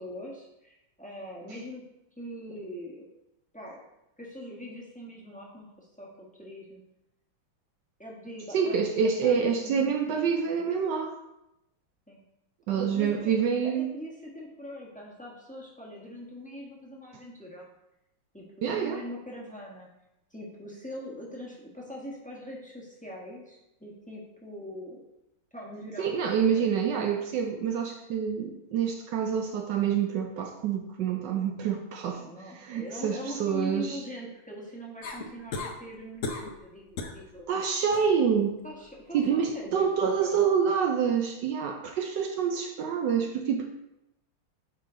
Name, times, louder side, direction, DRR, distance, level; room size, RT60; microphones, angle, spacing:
voice 1, 0.0-1.8 2.2-3.0 3.5-3.8 4.2-6.8 8.0-10.7 12.1-12.2 12.7-13.3 13.6-17.7 18.3-19.9 20.3-25.0 25.5-26.1 26.4-26.7 32.1-37.5 38.6-39.9 40.2-40.3, equal, 5° left, -4 dB, 1.0 m, -42 dB
voice 2, 8.5-11.2 12.7-13.9 18.6-19.0 26.0-32.2 32.6-34.0 37.5-38.6 39.1-43.7, right 7 dB, 70° right, 4 dB, 1.1 m, -27 dB
sound 1, 35.0-35.8 36.2-36.6 37.0-37.2 37.7-38.1 39.9-40.0, left 3 dB, 70° left, 0.7 m, -35 dB
9.3 x 3.8 x 3.9 m, 0.88 s
omnidirectional pair, 2.3 m